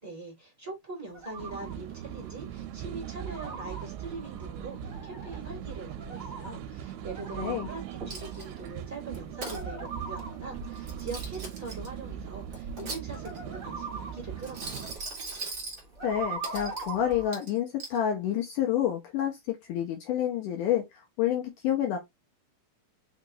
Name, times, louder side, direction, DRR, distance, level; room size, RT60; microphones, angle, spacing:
voice 1, 0.0-14.9, right 3 dB, 5° right, 1.3 m, -42 dB
sound 1, 1.1-17.3, right 3 dB, 35° right, 0.8 m, -43 dB
sound 2, 1.4-15.0, right 11 dB, 85° right, 2.6 m, -40 dB
voice 2, 7.3-7.7 16.0-20.9 21.2-22.0, left 10 dB, 80° left, 1.9 m, -28 dB
Coin (dropping), 8.1-8.7 9.1-9.6 10.8-11.9 12.5-13.5 14.4-15.8 16.4-16.9 17.3-18.0, right 3 dB, 60° right, 1.0 m, -40 dB
5.8 x 3.0 x 2.7 m
omnidirectional pair, 4.6 m